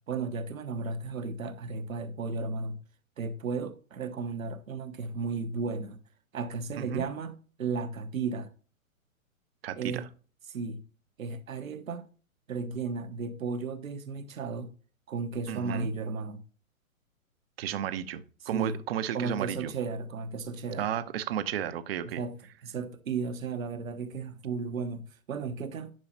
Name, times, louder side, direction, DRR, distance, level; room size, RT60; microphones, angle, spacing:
voice 1, 0.0-2.8 3.2-6.0 6.3-8.5 9.8-10.1 10.5-10.8 11.2-12.1 12.5-14.7 15.1-16.4 18.5-18.8 19.1-20.9 22.0-22.4 22.6-25.9, right 4 dB, 70° right, 1.2 m, -34 dB
voice 2, 9.6-10.0 15.5-15.9 17.6-19.7 20.8-22.2, right 10 dB, 45° right, 0.8 m, -33 dB
10.5 x 5.6 x 2.8 m
figure-of-eight pair, 125°, 42 cm